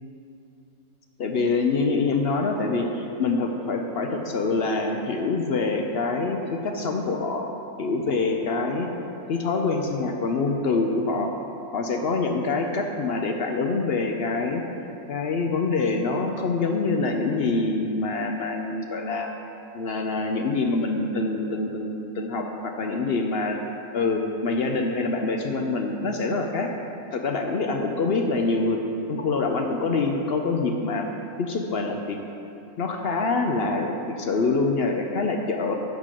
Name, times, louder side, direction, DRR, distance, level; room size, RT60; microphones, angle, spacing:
voice 1, 1.2-6.4 6.6-7.5 7.8-8.9 9.3-11.3 11.7-14.6 15.1-19.3 19.7-22.4 22.8-23.6 23.9-26.7 27.1-28.8 29.1-31.1 31.4-32.2 32.8-35.7, left 3 dB, 60° left, 3 dB, 0.7 m, -25 dB
11.0 x 3.8 x 7.4 m, 2.8 s
omnidirectional pair, 1.6 m